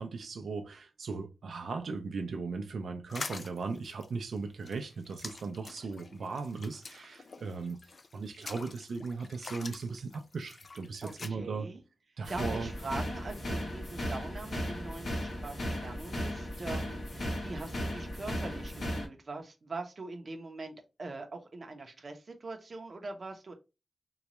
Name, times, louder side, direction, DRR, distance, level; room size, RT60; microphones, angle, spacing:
voice 1, 0.0-11.7 12.2-12.7, right 4 dB, 85° right, 0.5 m, -38 dB
sound 1, 3.1-11.3, left 3 dB, 40° left, 0.3 m, -46 dB
voice 2, 11.0-11.8 12.3-23.5, right 3 dB, 40° right, 0.6 m, -42 dB
sound 2, 12.2-19.1, equal, 75° left, 1.3 m, -36 dB
3.9 x 2.3 x 2.9 m
wide cardioid pair, 175°, 0 cm